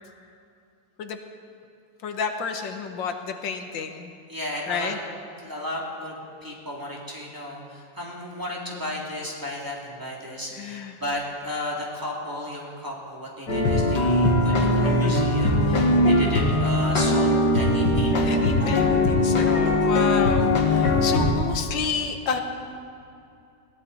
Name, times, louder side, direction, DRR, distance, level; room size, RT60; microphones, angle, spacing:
voice 1, 2.0-4.1 4.7-5.0 10.5-11.0 18.3-22.4, left 6 dB, 85° left, 6 dB, 1.8 m, -30 dB
voice 2, 4.3-5.0 5.4-6.2 6.4-18.3, left 1 dB, 10° right, -4 dB, 2.7 m, -34 dB
sound 1, 13.5-21.3, left 2 dB, 65° left, 2.4 m, -20 dB
21.5 x 16.5 x 4.2 m, 2.6 s
omnidirectional pair, 2.0 m